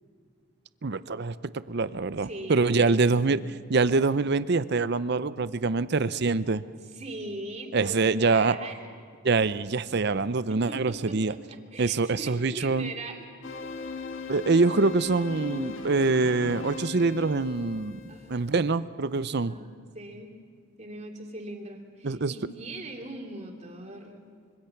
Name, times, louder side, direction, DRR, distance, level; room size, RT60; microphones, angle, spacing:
voice 1, 0.8-1.3 1.7-3.4 3.7-6.6 7.7-8.5 9.2-11.3 11.8-12.9 14.3-19.6 22.0-22.3, right 3 dB, 50° right, 15 dB, 0.6 m, -25 dB
voice 2, 2.2-3.5 6.8-8.9 10.5-13.2 18.1-18.6 19.3-20.3 20.8-24.2, right 2 dB, 30° right, 1 dB, 2.7 m, -41 dB
sound 1, 13.4-18.7, left 4 dB, 60° left, 1.6 m, -38 dB
25.0 x 24.0 x 5.9 m, 2.2 s
head